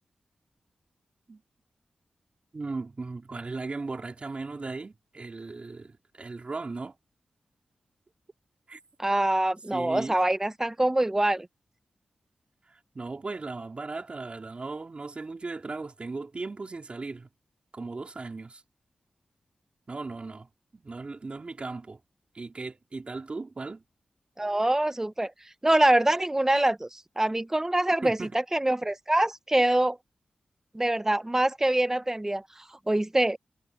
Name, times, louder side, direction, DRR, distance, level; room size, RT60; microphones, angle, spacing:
voice 1, 2.5-6.9 8.7-8.8 9.7-10.2 12.7-17.3 17.7-18.6 19.9-22.0 22.3-23.8 28.0-28.3, right 3 dB, 45° right, 4.1 m, -37 dB
voice 2, 9.0-11.5 24.4-25.3 25.6-28.2 28.5-30.0 30.7-33.4, right 1 dB, 15° right, 0.8 m, -25 dB
cardioid pair, 65°, 3 cm